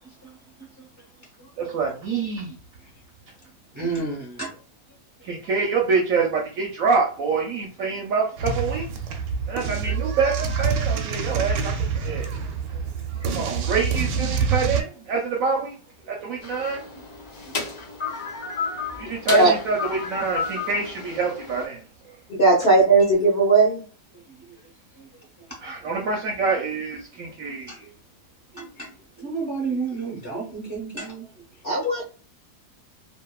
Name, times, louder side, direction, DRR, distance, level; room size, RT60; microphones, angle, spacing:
voice 1, 0.0-1.8 2.8-2.9 3.7-4.6 5.2-5.3 12.6-12.7 13.1-13.5 17.5-17.6 17.8-18.2 19.0-19.1 24.1-25.7 27.5-27.9 28.5-31.6, right 4 dB, 20° right, -4 dB, 0.5 m, -34 dB
voice 2, 1.6-2.5 5.3-8.8 9.5-11.7 12.0-12.3 13.2-15.7 16.1-16.8 19.0-21.8 25.6-27.7, right 4 dB, 70° right, 0 dB, 0.8 m, -26 dB
sound 1, 8.4-14.8, right 6 dB, 85° right, 1.2 m, -26 dB
sound 2, 16.4-21.7, left 4 dB, 80° left, 0.3 m, -32 dB
voice 3, 22.3-23.8 31.6-32.0, right 3 dB, 50° left, -4 dB, 0.8 m, -17 dB
2.7 x 2.4 x 2.2 m, 0.38 s
omnidirectional pair, 1.8 m